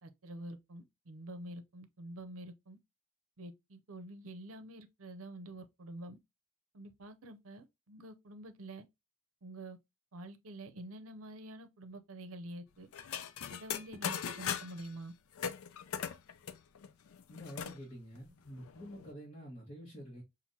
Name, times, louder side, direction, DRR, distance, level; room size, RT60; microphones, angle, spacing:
voice 1, 0.0-2.8 3.4-6.2 6.7-8.8 9.4-9.8 10.1-12.9 13.5-15.1, right 1 dB, 75° right, 0.6 m, -47 dB
sound 1, 12.9-14.9 15.4-17.8 18.2-18.3 18.5-19.1, left 8 dB, 80° left, 0.4 m, -40 dB
voice 2, 17.3-20.2, equal, 30° left, 1.4 m, -48 dB
5.8 x 2.6 x 2.8 m
head